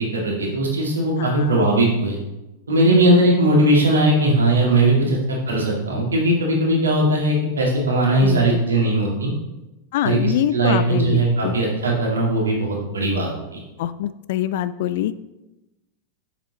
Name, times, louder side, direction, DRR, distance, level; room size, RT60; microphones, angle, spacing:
voice 1, 0.0-2.2 2.7-9.3 10.0-13.6, right 1 dB, 70° right, -2 dB, 2.0 m, -19 dB
voice 2, 1.2-1.7 2.9-3.0 5.1-5.2 8.2-8.6 9.9-11.6 13.8-15.2, left 12 dB, 55° left, 14 dB, 0.3 m, -24 dB
7.1 x 7.0 x 2.9 m, 0.97 s
figure-of-eight pair, 90°, 0 cm